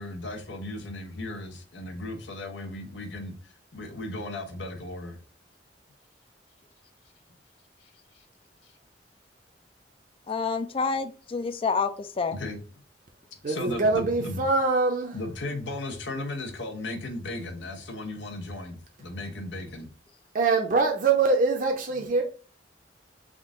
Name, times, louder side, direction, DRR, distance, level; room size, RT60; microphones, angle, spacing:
voice 1, 0.0-3.3 3.7-5.2 8.1-8.2 12.3-12.6 13.5-14.5 15.1-19.9, left 2 dB, 85° left, 0.8 m, -36 dB
voice 2, 10.3-12.3, left 5 dB, 30° left, 0.3 m, -28 dB
voice 3, 13.4-15.2 20.3-22.2, right 3 dB, 45° right, 0.6 m, -23 dB
3.7 x 2.5 x 3.6 m
head